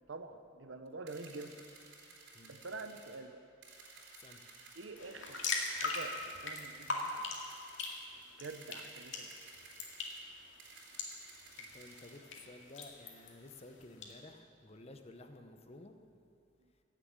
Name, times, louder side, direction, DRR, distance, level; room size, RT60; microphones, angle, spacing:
voice 1, 0.1-1.6 2.5-3.4 4.8-7.1 8.4-9.3 16.6-16.7, right 3 dB, 85° right, 8 dB, 0.9 m, -47 dB
sound 1, 1.1-3.2 3.6-4.9 5.3-8.1 8.4-10.2 10.6-12.2, right 3 dB, 65° right, 3.2 m, -56 dB
sound 2, 5.0-14.1, left 3 dB, 90° left, 2.2 m, -42 dB
voice 2, 11.6-15.9, left 2 dB, 35° left, 6 dB, 0.9 m, -54 dB
15.5 x 7.7 x 8.9 m, 2.5 s
head